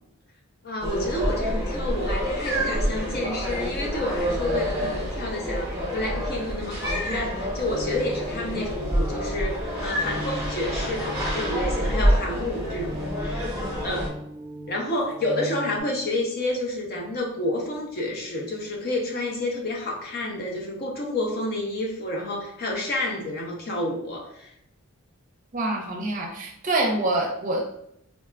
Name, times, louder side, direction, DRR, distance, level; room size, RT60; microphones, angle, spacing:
voice 1, 0.6-13.5 13.8-14.1 14.7-24.5, left 1 dB, 45° left, 0 dB, 0.6 m, -29 dB
sound 1, 0.8-14.1, equal, 15° right, 0.9 m, -27 dB
sound 2, 7.7-15.8, equal, 15° left, 0.9 m, -38 dB
voice 2, 25.5-27.7, right 2 dB, 35° right, 1 dB, 0.5 m, -26 dB
3.9 x 2.3 x 2.3 m, 0.76 s
head